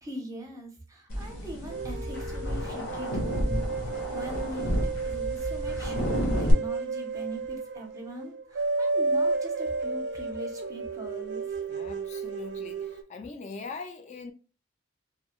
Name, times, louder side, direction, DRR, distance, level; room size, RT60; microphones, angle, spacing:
voice 1, 0.0-4.8 5.0-11.4, equal, 20° right, 0.6 m, -42 dB
sound 1, 1.1-6.5, equal, 85° left, 0.9 m, -31 dB
sound 2, 1.7-13.0, right 4 dB, 65° right, 0.4 m, -32 dB
voice 2, 11.7-14.3, left 4 dB, 40° left, 0.4 m, -41 dB
2.7 x 2.0 x 2.9 m
head